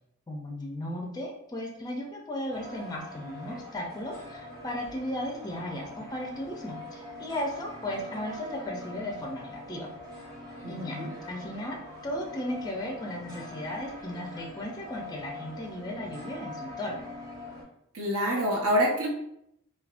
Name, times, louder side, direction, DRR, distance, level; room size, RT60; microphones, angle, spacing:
voice 1, 0.3-9.9 10.7-11.0 11.3-17.0, left 1 dB, 15° left, 0 dB, 0.4 m, -36 dB
sound 1, 2.5-17.6, left 2 dB, 15° right, 0.8 m, -43 dB
voice 2, 10.6-11.1 17.9-19.1, equal, 70° right, -1 dB, 0.8 m, -26 dB
3.4 x 2.7 x 2.4 m, 0.76 s
head